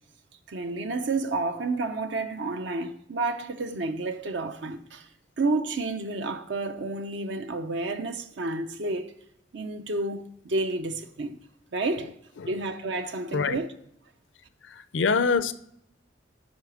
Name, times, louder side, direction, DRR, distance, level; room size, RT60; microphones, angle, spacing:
voice 1, 0.5-5.1 5.4-9.1 9.5-11.4 11.7-12.1 12.5-13.7, right 2 dB, 65° right, 0.6 m, -30 dB
voice 2, 14.6-15.5, left 5 dB, 75° left, 0.5 m, -25 dB
8.0 x 5.7 x 4.8 m
head